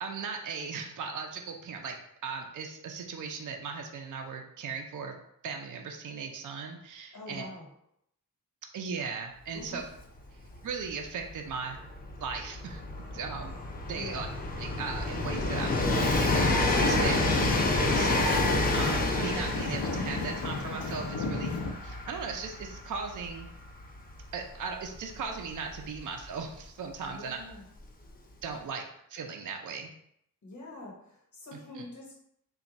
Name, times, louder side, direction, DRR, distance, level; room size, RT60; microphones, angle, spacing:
voice 1, 0.0-2.0 2.2-5.1 5.4-7.4 8.7-9.8 10.6-11.8 12.2-12.8 13.1-14.3 14.6-16.5 16.8-18.1 18.7-23.5 24.3-27.4 28.4-28.8 29.1-29.9 31.8-31.9, right 5 dB, 55° right, 3 dB, 0.5 m, -38 dB
voice 2, 7.1-7.7 9.5-9.8 13.9-14.2 17.8-18.1 27.1-27.7 30.4-32.1, left 2 dB, 55° left, -2 dB, 1.2 m, -44 dB
Train, 9.6-9.7 9.9-26.5 27.5-27.6, left 2 dB, 25° left, 0.4 m, -30 dB
sound 1, 16.3-21.7, left 3 dB, 70° left, 0.7 m, -33 dB
3.4 x 2.3 x 4.0 m, 0.72 s
wide cardioid pair, 150°, 36 cm